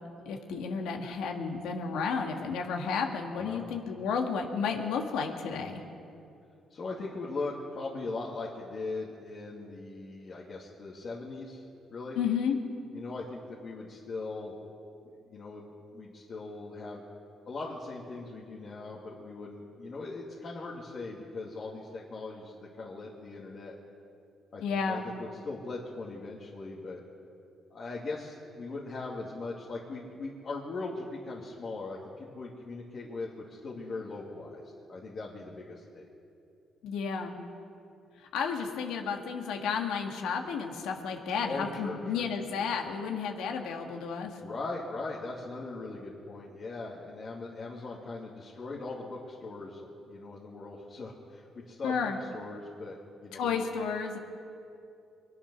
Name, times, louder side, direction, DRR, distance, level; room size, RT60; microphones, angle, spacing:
voice 1, 0.2-5.8 12.1-12.6 24.6-25.1 36.8-37.4 38.2-44.4 51.8-52.2 53.3-54.2, left 6 dB, 90° left, 2 dB, 1.8 m, -32 dB
voice 2, 6.7-11.6 11.9-12.2 12.9-14.5 15.0-17.0 17.5-23.7 24.5-27.0 27.7-34.6 34.9-36.0 41.4-42.3 44.4-53.6, left 3 dB, 50° left, -5 dB, 2.3 m, -40 dB
23.5 x 10.0 x 6.2 m, 2.6 s
cardioid pair, 90°, 0 cm